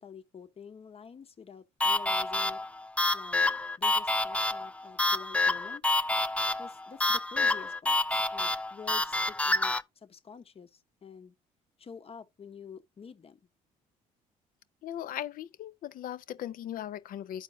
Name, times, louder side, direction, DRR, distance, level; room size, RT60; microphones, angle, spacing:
voice 1, 0.0-2.6 3.1-3.4 3.8-5.8 6.6-11.4 11.8-13.4, left 6 dB, 40° left, 1.0 m, -48 dB
sound 1, 1.8-9.8, left 2 dB, 10° left, 0.5 m, -28 dB
voice 2, 14.8-17.4, left 11 dB, 65° left, 0.7 m, -38 dB
12.5 x 4.5 x 2.7 m
supercardioid pair, 75°, 16 cm